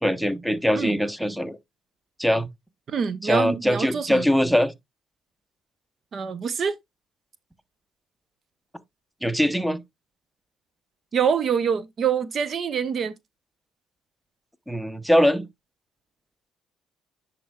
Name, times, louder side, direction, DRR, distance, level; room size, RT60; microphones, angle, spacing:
voice 1, 0.0-1.6 2.2-2.5 3.2-4.7 9.2-9.8 14.7-15.5, equal, ahead, 0.9 m, -22 dB
voice 2, 2.9-4.3 6.1-6.7 11.1-13.1, right 7 dB, 50° right, 0.7 m, -25 dB
10.0 x 4.5 x 2.3 m
supercardioid pair, 75°, 0 cm